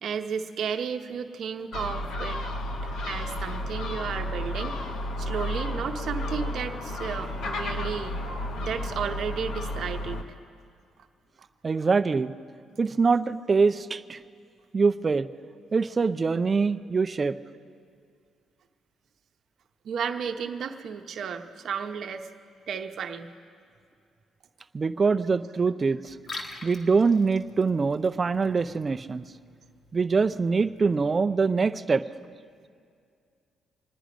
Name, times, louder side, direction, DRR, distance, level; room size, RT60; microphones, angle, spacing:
voice 1, 0.0-2.4 2.8-4.9 5.1-8.2 8.6-10.2 19.8-22.3 22.7-23.3, right 7 dB, 65° right, 6 dB, 0.9 m, -33 dB
Gull seagull, 1.7-10.2, left 1 dB, 75° left, 1.1 m, -32 dB
voice 2, 11.6-12.3 12.8-14.2 14.7-15.3 15.7-17.4 24.7-26.1 26.6-29.2 29.9-32.0, right 4 dB, 35° right, 10 dB, 0.5 m, -24 dB
Liquid, 26.1-31.1, left 2 dB, 45° left, 1.8 m, -46 dB
25.5 x 10.0 x 5.1 m, 2.3 s
cardioid pair, 90°, 0 cm